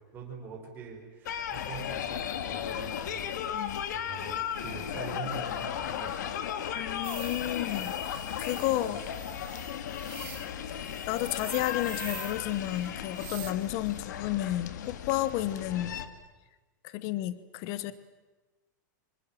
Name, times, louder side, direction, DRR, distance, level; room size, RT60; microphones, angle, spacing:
voice 1, 0.1-3.3 3.9-6.4 8.8-9.0, right 5 dB, 20° right, 0 dB, 5.5 m, -44 dB
sound 1, 1.3-16.1, left 9 dB, 65° left, 2.1 m, -35 dB
voice 2, 6.7-8.0 8.4-9.0 11.1-15.9 16.8-17.9, left 14 dB, 30° left, 15 dB, 1.0 m, -31 dB
sound 2, 7.0-13.5, right 19 dB, 35° right, 1.8 m, -46 dB
27.0 x 26.0 x 7.7 m, 1.2 s
supercardioid pair, 175°, 10 cm